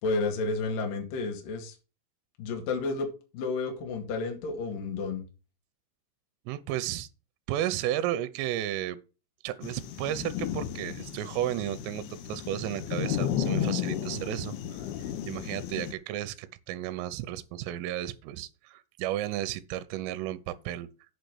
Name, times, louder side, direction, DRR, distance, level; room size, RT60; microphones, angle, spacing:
voice 1, 0.0-1.7 2.4-3.1 3.3-5.2, left 3 dB, 50° left, 3.1 m, -31 dB
voice 2, 6.5-7.1 7.5-9.0 9.4-14.9 15.2-20.9, right 13 dB, 85° right, 3.3 m, -33 dB
sound 1, 9.6-15.9, left 10 dB, 85° left, 2.2 m, -33 dB
8.5 x 6.6 x 6.3 m
omnidirectional pair, 6.0 m